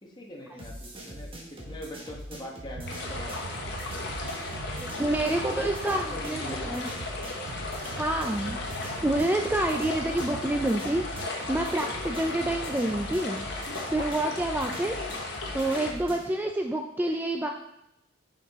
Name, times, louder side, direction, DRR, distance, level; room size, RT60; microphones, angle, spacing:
voice 1, 0.0-3.6 5.3-6.9, left 1 dB, 25° left, 0 dB, 1.2 m, -42 dB
sound 1, 0.6-16.3, equal, 30° right, 1.4 m, -42 dB
sound 2, 2.7-16.7, right 4 dB, 90° right, 0.5 m, -43 dB
sound 3, 2.9-15.9, left 3 dB, 60° left, 1.2 m, -36 dB
voice 2, 4.8-6.9 8.0-8.6 9.0-13.4 13.6-15.0 15.5-17.5, right 1 dB, 10° right, 3 dB, 0.3 m, -28 dB
7.1 x 5.7 x 3.5 m, 0.85 s
head